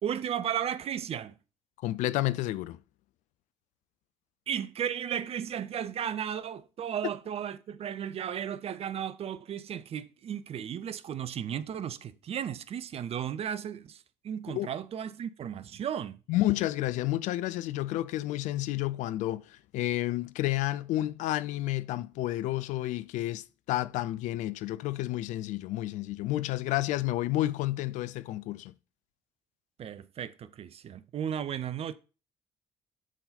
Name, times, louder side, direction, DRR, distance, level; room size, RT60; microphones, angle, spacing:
voice 1, 0.0-1.3 4.5-16.2 29.8-31.9, right 9 dB, 40° right, 0.5 m, -35 dB
voice 2, 1.8-2.8 14.5-14.7 16.3-28.7, left 15 dB, 55° left, 0.4 m, -30 dB
10.5 x 3.9 x 4.1 m
figure-of-eight pair, 45°, 15 cm